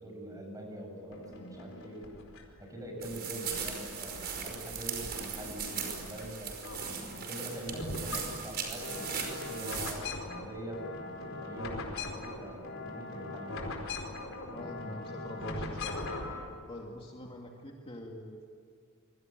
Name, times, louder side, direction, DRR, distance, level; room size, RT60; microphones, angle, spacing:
voice 1, 0.0-2.1 2.6-6.5 7.0-13.7, right 1 dB, 15° right, 1 dB, 7.5 m, -44 dB
sound 1, 1.1-2.6 3.0-4.6 5.0-6.3 6.5-16.5, left 2 dB, 65° left, 4.7 m, -41 dB
sound 2, 3.0-9.9, right 6 dB, 45° right, 5.2 m, -38 dB
voice 2, 14.5-16.1 16.7-18.5, left 1 dB, 25° left, 0 dB, 2.3 m, -44 dB
27.0 x 24.5 x 9.2 m, 2.2 s
head